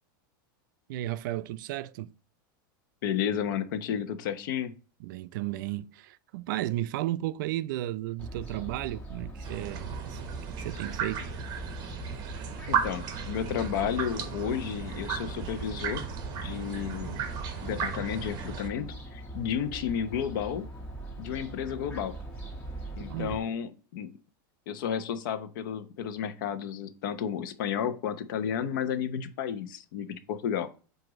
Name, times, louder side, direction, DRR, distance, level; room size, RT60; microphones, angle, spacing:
voice 1, 0.9-2.1 5.0-10.2 10.5-11.3 23.1-23.4, right 15 dB, 65° right, 0.4 m, -34 dB
voice 2, 3.0-4.7 12.7-16.1 16.4-20.7 21.2-22.1 23.0-24.1 24.7-30.7, left 8 dB, 65° left, 0.9 m, -32 dB
Fowl, 8.2-23.4, right 1 dB, 10° left, 2.0 m, -42 dB
sound 1, 9.4-18.7, right 7 dB, 35° right, 1.0 m, -35 dB
7.7 x 2.6 x 5.1 m
supercardioid pair, 150°, 11 cm